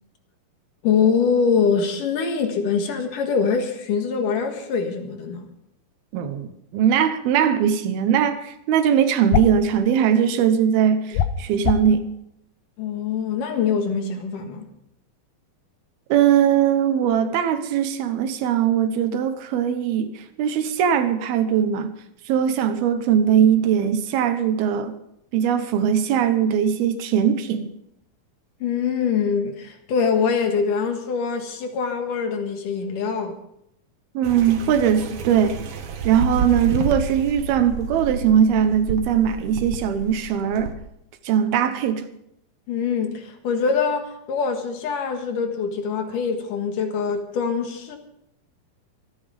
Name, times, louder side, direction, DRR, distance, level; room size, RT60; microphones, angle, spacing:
voice 1, 0.8-5.5 12.8-14.7 28.6-33.3 42.7-48.0, left 6 dB, 65° left, 3.0 m, -24 dB
voice 2, 6.1-12.1 16.1-21.9 22.3-24.9 25.3-27.7 34.1-35.6 36.0-40.7 41.2-42.1, right 8 dB, 80° right, 3.0 m, -20 dB
sound 1, 9.3-9.6 11.1-11.9, left 10 dB, 90° left, 2.7 m, -22 dB
sound 2, 34.2-40.7, right 4 dB, 65° right, 1.5 m, -30 dB
24.5 x 9.5 x 5.2 m
omnidirectional pair, 4.3 m